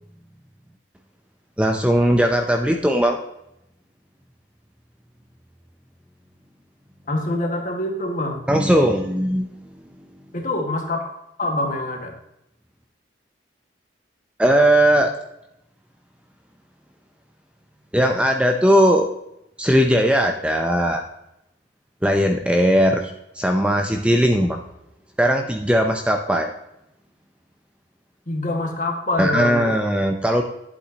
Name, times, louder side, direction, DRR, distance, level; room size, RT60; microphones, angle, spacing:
voice 1, 1.6-3.2 8.5-9.5 14.4-15.1 17.9-19.1 19.6-21.0 22.0-24.6 25.2-26.5 29.2-30.4, equal, 5° right, 3 dB, 0.6 m, -18 dB
voice 2, 7.1-8.4 10.3-11.0 11.4-12.2 28.3-29.7, left 1 dB, 40° left, 2 dB, 1.7 m, -25 dB
11.5 x 8.2 x 2.9 m, 0.82 s
head